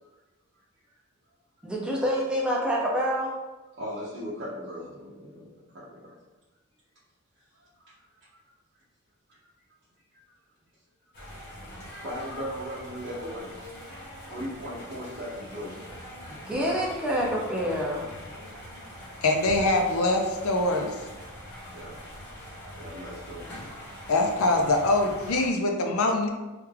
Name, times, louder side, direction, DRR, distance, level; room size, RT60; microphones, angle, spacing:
voice 1, 1.6-3.3 16.3-18.1, equal, 5° right, -4 dB, 0.6 m, -27 dB
voice 2, 3.8-6.1 7.6-7.9 11.9-13.7 14.3-15.8 21.7-22.0 22.7-23.8, equal, 50° right, -9 dB, 0.7 m, -38 dB
sound 1, 11.1-25.5, equal, 55° left, 0.9 m, -43 dB
voice 3, 19.2-21.0 24.1-26.3, left 2 dB, 70° left, 3 dB, 0.5 m, -23 dB
3.3 x 2.3 x 3.3 m, 1.1 s
head